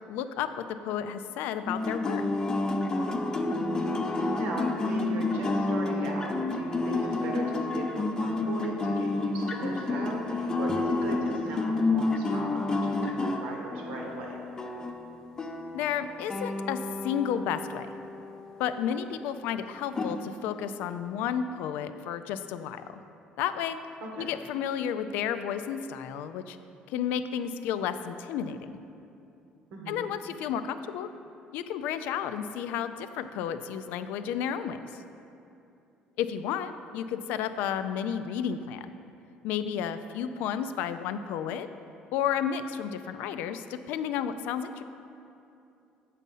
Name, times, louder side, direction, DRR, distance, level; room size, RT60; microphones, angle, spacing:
voice 1, 0.1-0.5 0.8-2.2 15.7-17.9 18.6-22.8 23.4-23.8 24.2-26.6 26.9-28.8 29.9-31.1 31.5-35.0 36.2-38.9 39.4-41.7 42.1-44.8, left 8 dB, 85° left, 11 dB, 0.3 m, -32 dB
sound 1, 1.7-19.0 19.9-20.2, left 2 dB, 25° left, 0.5 m, -30 dB
voice 2, 3.5-3.9 4.2-14.4 24.0-24.3 29.7-30.1, right 3 dB, 85° right, 0 dB, 1.1 m, -38 dB
7.3 x 4.1 x 5.4 m, 2.7 s
cardioid pair, 120°, 3 cm